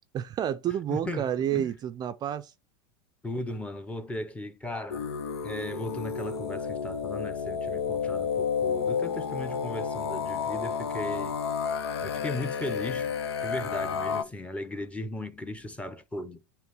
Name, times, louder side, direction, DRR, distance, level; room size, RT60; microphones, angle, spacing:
voice 1, 0.1-2.5, right 10 dB, 30° right, 0.4 m, -30 dB
voice 2, 0.9-1.7 3.2-5.1 5.4-11.4 12.0-13.1 13.4-16.4, left 1 dB, 10° left, 0.8 m, -37 dB
sound 1, 4.9-14.2, left 6 dB, 85° left, 0.7 m, -31 dB
9.2 x 3.1 x 3.5 m
hypercardioid pair, 105°, 13 cm